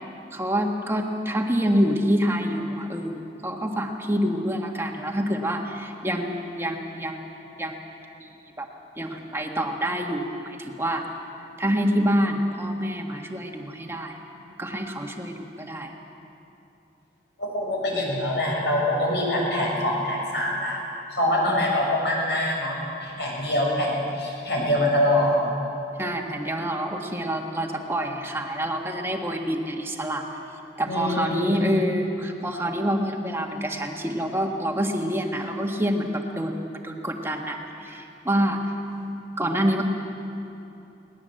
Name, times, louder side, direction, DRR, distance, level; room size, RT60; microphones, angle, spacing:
voice 1, 0.3-7.2 7.6-7.8 8.2-8.3 8.6-8.7 9.0-11.0 11.6-14.1 14.6-15.9 17.9-18.1 21.5-21.7 26.0-30.2 30.8-38.6 39.4-39.8, equal, 15° right, 2 dB, 1.6 m, -27 dB
voice 2, 17.4-20.8 21.1-25.3 30.9-31.7, left 1 dB, 70° left, -2 dB, 6.6 m, -24 dB
21.5 x 18.5 x 7.7 m, 2.9 s
head